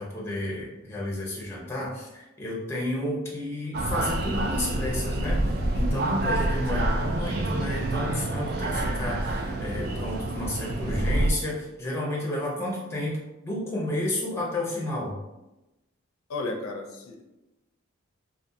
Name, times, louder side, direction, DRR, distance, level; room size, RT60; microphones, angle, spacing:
voice 1, 0.0-15.2, left 1 dB, 10° left, -4 dB, 0.6 m, -31 dB
sound 1, 3.7-11.3, right 1 dB, 50° right, 0.3 m, -27 dB
voice 2, 6.7-7.1 16.3-17.2, left 2 dB, 85° left, 2 dB, 0.4 m, -34 dB
2.5 x 2.5 x 2.5 m, 0.98 s
head